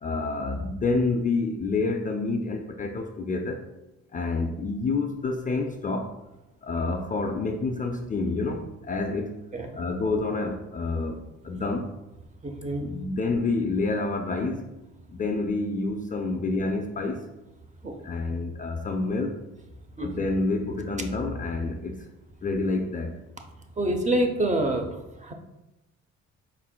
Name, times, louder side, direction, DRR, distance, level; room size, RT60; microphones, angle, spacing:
voice 1, 0.0-3.6 4.1-6.1 6.6-9.4 9.7-11.9 12.8-14.7 15.1-17.3 18.0-19.4 20.0-22.1 22.4-23.2, left 3 dB, 25° left, 3 dB, 0.3 m, -28 dB
voice 2, 12.4-12.9 17.8-18.0 20.0-20.3 23.8-25.3, right 1 dB, 25° right, 4 dB, 0.6 m, -27 dB
4.3 x 4.1 x 2.2 m, 0.96 s
cardioid pair, 90°, 30 cm